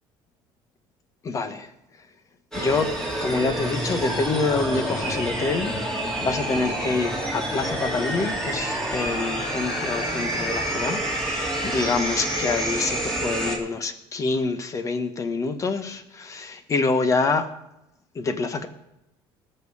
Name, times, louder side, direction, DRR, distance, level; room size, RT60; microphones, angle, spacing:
voice 1, 1.2-1.7 2.5-2.9 3.2-17.5 18.1-18.7, left 4 dB, 30° left, 9 dB, 1.3 m, -26 dB
sound 1, 2.5-13.6, right 1 dB, 5° left, 3.0 m, -28 dB
19.5 x 6.8 x 4.9 m, 0.86 s
cardioid pair, 140°, 11 cm